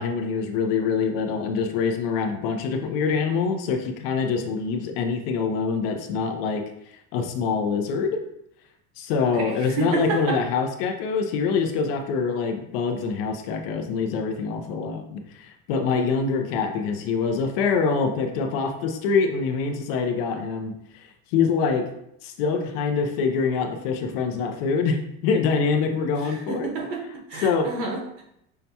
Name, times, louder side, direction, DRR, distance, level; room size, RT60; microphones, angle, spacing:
voice 1, 0.0-8.2 9.0-21.9 22.2-25.0 25.2-26.7 27.4-27.7, left 5 dB, 60° left, 5 dB, 0.6 m, -25 dB
voice 2, 9.3-10.4 26.2-28.2, right 4 dB, 55° right, 1 dB, 0.9 m, -30 dB
5.6 x 2.2 x 2.7 m, 0.77 s
cardioid pair, 165°, 33 cm